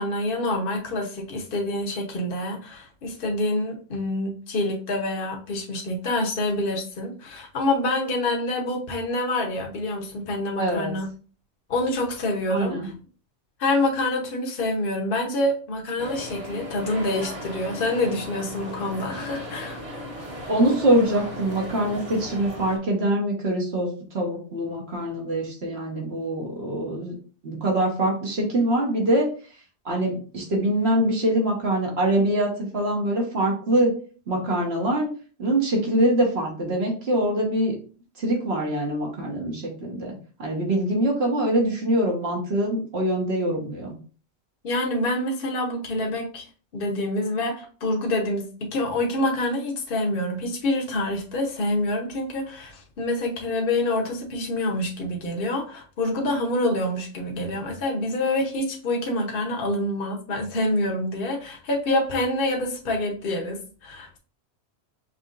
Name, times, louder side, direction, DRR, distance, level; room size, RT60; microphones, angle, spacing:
voice 1, 0.0-11.1 11.7-12.9 13.6-19.8 44.6-46.4 46.7-64.2, left 1 dB, 55° left, 1 dB, 1.1 m, -26 dB
voice 2, 10.6-10.9 12.5-12.9 20.5-27.2 27.4-29.3 29.8-33.9 34.3-35.1 35.4-37.7 38.2-43.9, right 1 dB, 70° right, -1 dB, 1.5 m, -24 dB
sound 1, 16.0-22.8, equal, 35° right, 1.0 m, -36 dB
5.7 x 3.0 x 2.5 m, 0.39 s
omnidirectional pair, 1.1 m